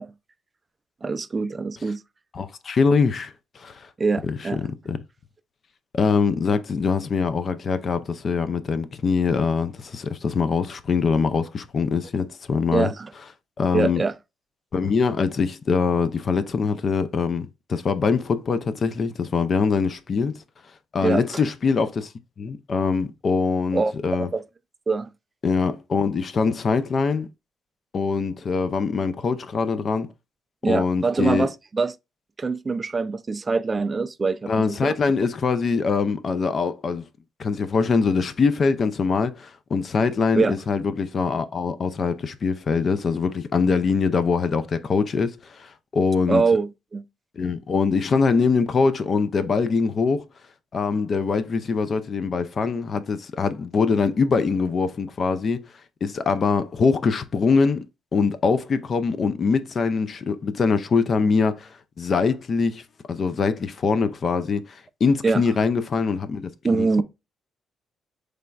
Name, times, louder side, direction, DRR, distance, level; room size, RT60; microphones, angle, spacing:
voice 1, 1.0-2.0 4.0-4.6 12.7-13.1 13.7-14.1 21.0-21.2 23.7-23.9 24.2-24.4 24.9-25.1 30.6-31.9 32.4-34.9 40.3-40.5 46.3-47.0 65.2-65.4 66.6-67.0, right 4 dB, 30° right, 0.3 m, -23 dB
voice 2, 2.3-3.9 4.2-5.0 5.9-12.9 13.6-14.0 14.7-20.3 20.9-22.1 22.4-24.3 25.4-27.3 27.9-30.1 30.6-31.5 34.5-37.0 37.4-46.4 47.4-50.2 50.7-55.6 56.0-57.8 58.1-67.0, left 5 dB, 45° left, 0.4 m, -23 dB
5.0 x 3.3 x 2.3 m
cardioid pair, 90°, 0 cm